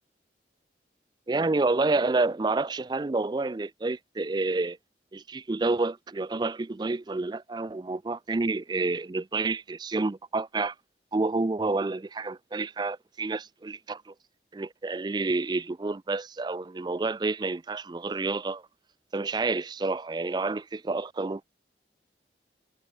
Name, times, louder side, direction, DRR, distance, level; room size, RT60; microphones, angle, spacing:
voice 1, 1.3-4.8 5.1-10.8 11.1-14.1 14.5-18.6 19.1-21.4, right 3 dB, 25° right, 0.4 m, -29 dB
head